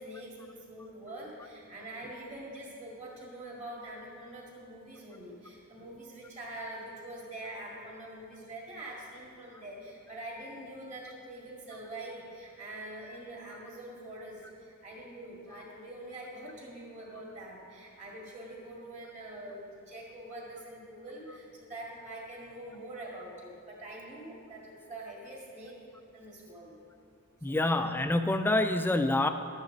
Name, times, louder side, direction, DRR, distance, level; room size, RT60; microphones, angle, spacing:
voice 1, 0.0-25.8 26.1-26.8 27.5-27.7, right 1 dB, 30° right, -3 dB, 2.1 m, -44 dB
voice 2, 27.4-29.3, left 2 dB, 10° left, 8 dB, 0.3 m, -26 dB
12.0 x 8.8 x 3.9 m, 2.4 s
head